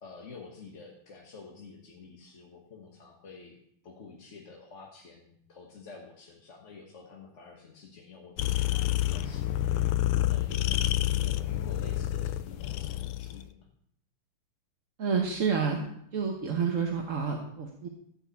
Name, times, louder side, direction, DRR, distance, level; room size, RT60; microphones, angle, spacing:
voice 1, 0.0-13.7, left 4 dB, 40° left, 0 dB, 1.4 m, -49 dB
sound 1, 8.4-13.4, left 13 dB, 90° left, 1.6 m, -28 dB
voice 2, 15.0-15.8 16.1-17.9, right 6 dB, 45° right, 1 dB, 1.3 m, -29 dB
15.0 x 5.6 x 8.4 m, 0.72 s
omnidirectional pair, 2.4 m